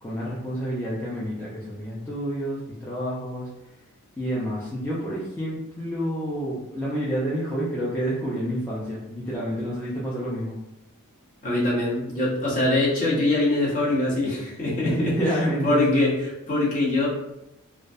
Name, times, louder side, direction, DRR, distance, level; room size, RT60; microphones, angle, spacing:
voice 1, 0.0-3.5 4.2-10.6 14.8-16.0, equal, 10° left, -8 dB, 0.4 m, -29 dB
voice 2, 11.4-17.1, left 2 dB, 35° left, -7 dB, 0.8 m, -23 dB
2.2 x 2.2 x 2.5 m, 0.87 s
head